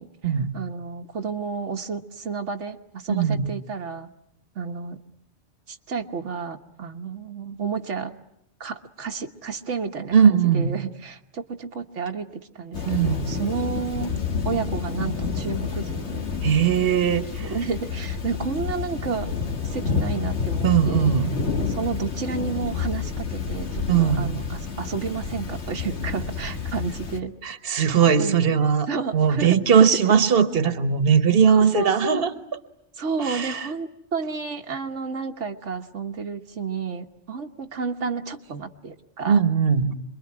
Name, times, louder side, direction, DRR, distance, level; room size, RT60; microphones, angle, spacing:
voice 1, 0.0-4.1 4.5-5.0 5.7-8.1 8.6-14.1 14.4-16.3 17.4-19.3 19.6-21.1 21.6-27.3 27.7-28.5 28.9-29.9 31.5-32.2 32.9-39.4, right 5 dB, 90° right, 4 dB, 1.6 m, -31 dB
voice 2, 3.1-3.5 10.1-10.7 12.9-13.2 16.4-17.4 20.6-21.3 23.9-24.3 27.4-28.9 29.1-32.3 33.2-33.7 39.3-39.9, right 7 dB, 55° right, 10 dB, 1.5 m, -19 dB
Thunder / Rain, 12.7-27.2, left 5 dB, 70° left, 2.0 m, -29 dB
27.0 x 22.5 x 9.7 m, 0.79 s
omnidirectional pair, 1.2 m